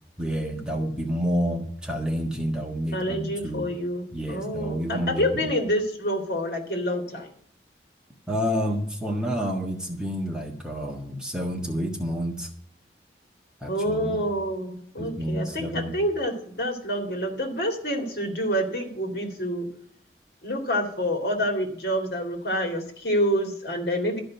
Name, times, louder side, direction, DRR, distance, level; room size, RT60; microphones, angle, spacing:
voice 1, 0.2-3.7 4.1-5.5 8.3-12.5 13.6-14.2 15.0-15.9, equal, 5° right, 0 dB, 1.5 m, -29 dB
voice 2, 2.9-7.3 13.7-19.7 20.4-24.2, equal, 60° left, 3 dB, 2.4 m, -27 dB
13.0 x 5.2 x 8.7 m, 0.62 s
head